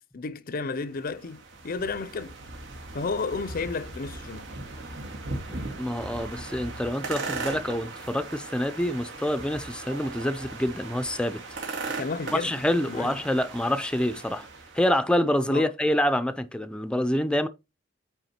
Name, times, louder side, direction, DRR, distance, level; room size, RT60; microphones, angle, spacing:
voice 1, 0.0-2.4 2.9-4.4 12.0-12.5 12.9-13.2 15.5-15.7, left 4 dB, 50° left, 0.6 m, -32 dB
sound 1, 0.9-14.9, right 3 dB, 85° right, 2.2 m, -38 dB
voice 2, 5.5-11.7 12.3-14.5 14.7-17.5, left 1 dB, 5° left, 0.5 m, -27 dB
9.1 x 3.6 x 4.3 m
head